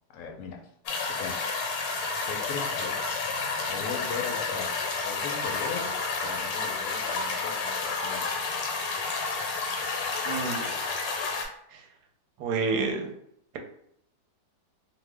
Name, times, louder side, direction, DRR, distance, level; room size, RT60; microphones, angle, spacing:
voice 1, 0.1-0.6 1.2-1.7 2.2-3.3 3.6-4.8 5.0-5.9 6.2-8.6, left 6 dB, 70° left, 2 dB, 0.8 m, -39 dB
sound 1, 0.9-11.5, left 4 dB, 90° left, 1.3 m, -30 dB
voice 2, 10.3-10.7 11.7-11.8 12.4-13.1, right 4 dB, 75° right, 3 dB, 1.1 m, -29 dB
2.9 x 2.0 x 3.3 m, 0.70 s
omnidirectional pair, 1.9 m